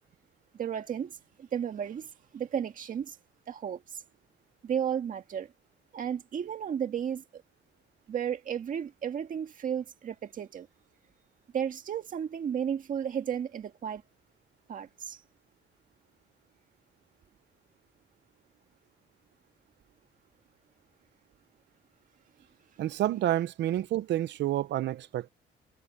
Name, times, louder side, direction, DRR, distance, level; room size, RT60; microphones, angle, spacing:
voice 1, 0.6-3.2 3.5-3.8 4.6-5.5 5.9-7.4 8.1-10.7 11.5-14.0 14.7-15.2, right 8 dB, 45° right, 1.8 m, -33 dB
voice 2, 22.8-25.3, right 13 dB, 65° right, 0.7 m, -29 dB
cardioid pair, 170°, 20 cm